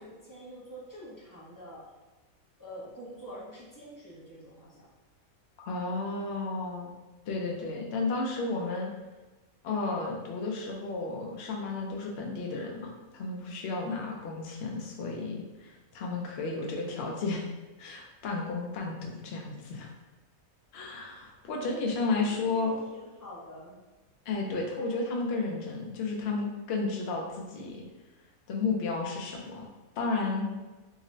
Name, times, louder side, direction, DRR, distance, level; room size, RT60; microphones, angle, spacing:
voice 1, 0.0-1.8 2.6-4.9 22.2-23.8, equal, 30° left, -7 dB, 0.3 m, -46 dB
voice 2, 5.6-6.9 7.3-8.9 9.6-17.5 17.8-19.9 20.7-22.7 24.3-27.8 28.5-29.7 30.0-30.5, left 3 dB, 65° left, 0 dB, 0.7 m, -32 dB
3.7 x 2.1 x 2.5 m, 1.2 s
omnidirectional pair, 1.5 m